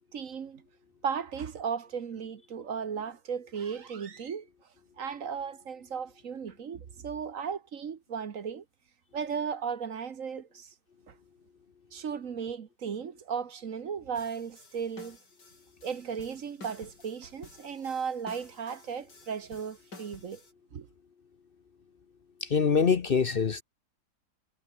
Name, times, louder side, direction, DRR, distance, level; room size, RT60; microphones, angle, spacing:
voice 1, 0.1-0.6 1.0-4.5 5.0-8.6 9.1-10.7 11.1-11.2 11.9-15.2 15.8-20.4 20.7-20.9, right 6 dB, 55° right, 1.5 m, -36 dB
sound 1, 14.1-20.5, left 3 dB, 90° left, 5.7 m, -52 dB
voice 2, 22.4-23.6, left 6 dB, 45° left, 0.8 m, -24 dB
omnidirectional pair, 1.8 m